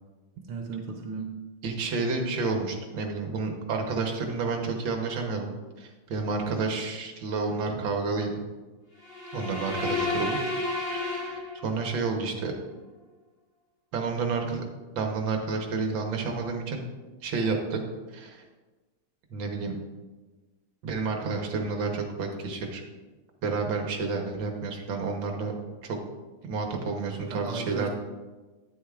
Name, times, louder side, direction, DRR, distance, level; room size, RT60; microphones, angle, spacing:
voice 1, 0.5-1.4 27.3-27.9, right 5 dB, 90° right, 2 dB, 1.7 m, -35 dB
voice 2, 1.6-5.5 5.8-8.3 9.3-10.4 10.9-12.5 13.9-14.6 14.9-16.8 17.2-17.8 18.1-18.4 19.3-19.8 20.8-22.8 23.4-25.5 25.8-26.0 26.4-27.9, right 4 dB, 65° right, 2 dB, 1.8 m, -30 dB
sound 1, 9.0-12.0, left 2 dB, 60° left, 3.0 m, -31 dB
10.0 x 9.4 x 2.4 m, 1.2 s
omnidirectional pair, 2.3 m